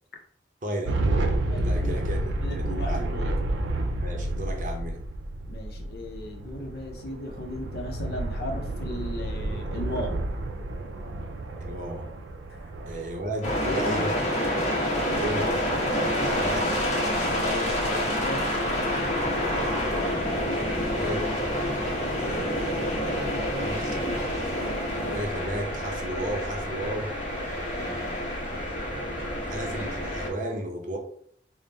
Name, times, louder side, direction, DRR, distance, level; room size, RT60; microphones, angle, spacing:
voice 1, 0.6-1.1 1.6-3.0 4.0-5.0 11.6-12.1 12.9-14.1 15.0-15.5 16.3-16.9 19.6-21.3 22.2-24.0 25.0-27.1 29.5-31.0, right 1 dB, 45° right, 2 dB, 0.7 m, -34 dB
sound 1, 0.9-13.7, right 1 dB, 85° right, 0.5 m, -30 dB
voice 2, 1.5-2.0 2.4-3.3 5.5-10.2 12.5-12.6 13.6-13.9 14.8-15.2 17.5-18.4, left 1 dB, 55° left, 2 dB, 0.7 m, -36 dB
sound 2, 13.4-30.3, equal, 40° left, 1.0 m, -28 dB
sound 3, 15.1-30.3, equal, 10° right, 1.1 m, -42 dB
3.5 x 2.1 x 4.0 m, 0.64 s
head